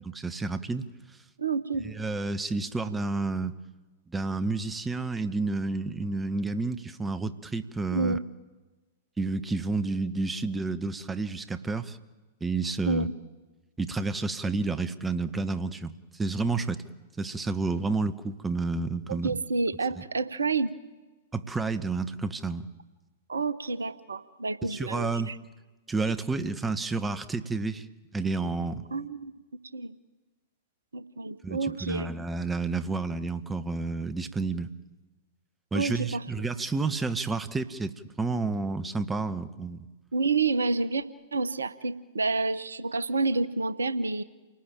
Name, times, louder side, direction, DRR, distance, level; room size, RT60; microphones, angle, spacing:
voice 1, 0.1-0.8 1.8-3.5 4.1-8.2 9.2-12.0 12.4-13.1 13.8-16.8 17.2-19.3 20.0-20.1 21.3-22.7 24.6-25.3 25.9-27.9 28.1-28.9 31.4-34.7 35.7-39.9, right 3 dB, 10° right, 12 dB, 1.2 m, -30 dB
voice 2, 1.4-1.8 7.9-8.2 12.9-13.1 19.1-20.7 23.3-25.4 28.9-29.3 29.7-30.0 30.9-32.1 35.7-36.2 40.1-41.0 41.3-44.2, right 3 dB, 75° right, 16 dB, 1.0 m, -29 dB
29.0 x 19.0 x 9.0 m, 1.2 s
figure-of-eight pair, 105°, 0 cm